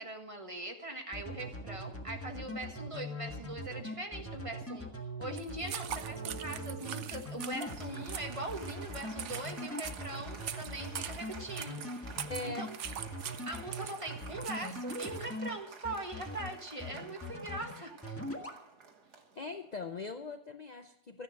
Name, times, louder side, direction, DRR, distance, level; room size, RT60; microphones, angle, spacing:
voice 1, 0.0-12.8 13.4-18.2, right 2 dB, 20° right, 3 dB, 1.5 m, -42 dB
sound 1, 1.1-15.5 15.8-16.5 16.8-17.7 18.0-18.6, equal, 10° left, 1.4 m, -41 dB
sound 2, 5.4-15.4, right 9 dB, 60° right, 0.9 m, -43 dB
Applause, 5.8-19.9, right 5 dB, 85° right, 2.1 m, -51 dB
voice 2, 12.3-12.7 19.4-21.2, left 4 dB, 60° left, 7 dB, 0.4 m, -41 dB
14.5 x 10.0 x 6.5 m, 0.77 s
omnidirectional pair, 1.7 m